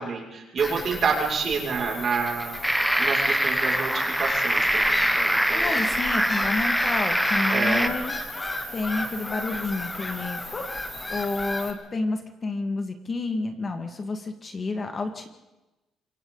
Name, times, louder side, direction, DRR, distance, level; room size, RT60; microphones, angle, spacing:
voice 1, 0.0-2.6 3.0-5.8 7.5-7.9, right 5 dB, 45° right, -1 dB, 6.3 m, -28 dB
Bird vocalization bird call bird song / Gull seagull, 0.6-11.7, left 1 dB, 15° left, 2.7 m, -33 dB
sound 1, 2.6-7.9, right 1 dB, 5° right, 1.1 m, -24 dB
voice 2, 5.5-8.2 8.7-10.6 11.1-15.3, left 3 dB, 30° left, 6 dB, 2.0 m, -30 dB
27.0 x 23.5 x 4.1 m, 1.0 s
cardioid pair, 125°, 0 cm